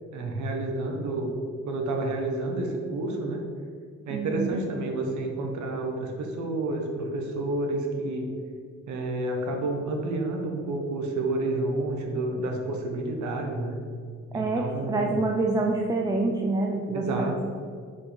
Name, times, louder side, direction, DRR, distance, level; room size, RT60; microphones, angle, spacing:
voice 1, 0.1-1.3 1.6-3.4 4.1-8.3 8.9-13.8 14.3-15.2 16.9-17.4, right 2 dB, 75° right, 2 dB, 1.2 m, -30 dB
voice 2, 4.1-4.5 14.3-17.4, right 3 dB, 15° right, 0 dB, 0.5 m, -27 dB
5.3 x 4.8 x 5.1 m, 2.1 s
cardioid pair, 120°, 30 cm